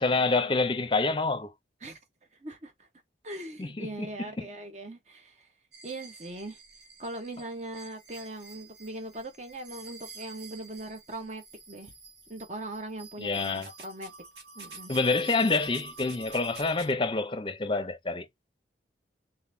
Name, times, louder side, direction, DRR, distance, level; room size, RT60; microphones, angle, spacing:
voice 1, 0.0-1.5 3.6-4.1 4.4-4.5 13.2-13.7 14.9-18.3, left 3 dB, 30° left, 0.7 m, -27 dB
voice 2, 2.4-2.9 3.2-5.5 5.8-6.6 7.0-11.9 12.3-14.1 14.5-14.9, right 1 dB, 40° right, 1.2 m, -40 dB
sound 1, 5.7-16.9, right 4 dB, 70° right, 1.7 m, -48 dB
4.0 x 3.9 x 2.7 m
head